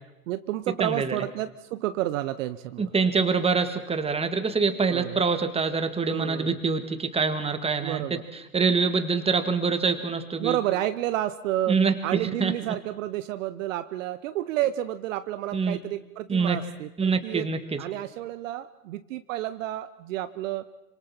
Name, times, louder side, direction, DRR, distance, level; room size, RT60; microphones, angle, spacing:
voice 1, 0.3-2.9 4.9-5.2 6.1-6.6 7.8-8.2 10.4-17.5 17.8-20.6, right 13 dB, 55° right, 12 dB, 0.9 m, -30 dB
voice 2, 0.8-1.2 2.8-8.2 8.5-10.6 11.7-12.5 15.5-15.8 16.3-16.6 17.0-17.8, right 5 dB, 10° right, 8 dB, 1.9 m, -25 dB
26.5 x 25.5 x 4.4 m, 0.98 s
hypercardioid pair, 100°, 46 cm